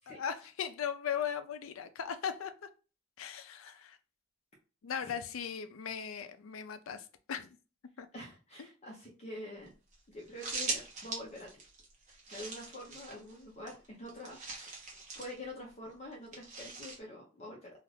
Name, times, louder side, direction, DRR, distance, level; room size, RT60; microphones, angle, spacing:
voice 1, 0.1-2.7 3.2-4.0 4.8-7.6 8.0-8.1, left 8 dB, 75° left, 0.4 m, -38 dB
voice 2, 8.1-9.7 10.1-11.5 12.3-14.8 15.1-17.7, left 1 dB, 35° left, 0.7 m, -46 dB
sound 1, 9.7-9.8 9.9-10.0 10.2-13.4 13.7-15.4 16.3-17.0, right 4 dB, 35° right, 0.8 m, -41 dB
2.5 x 2.4 x 3.2 m
head